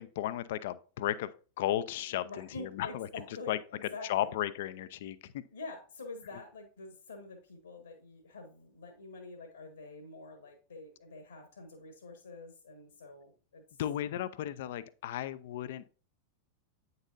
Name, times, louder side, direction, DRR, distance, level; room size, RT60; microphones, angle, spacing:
voice 1, 0.0-3.1 3.5-3.6 4.1-5.4 13.8-15.9, left 12 dB, 55° left, 15 dB, 0.5 m, -35 dB
voice 2, 2.2-4.3 5.5-13.6, left 3 dB, 75° left, 4 dB, 1.5 m, -47 dB
9.0 x 6.7 x 2.5 m, 0.36 s
figure-of-eight pair, 90°, 0 cm